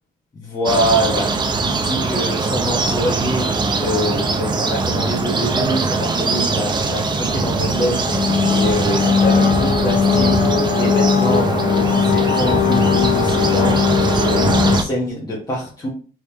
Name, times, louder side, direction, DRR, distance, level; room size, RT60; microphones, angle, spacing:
voice 1, 0.3-1.3 1.6-3.5 3.8-8.0 8.5-10.4 10.7-13.8 14.1-15.9, equal, 25° left, -5 dB, 1.1 m, -24 dB
sound 1, 0.6-14.8, right 3 dB, 25° right, 0.5 m, -21 dB
sound 2, 7.6-14.8, left 7 dB, 55° left, 0.4 m, -19 dB
3.6 x 3.1 x 2.9 m, 0.39 s
cardioid pair, 110°, 17 cm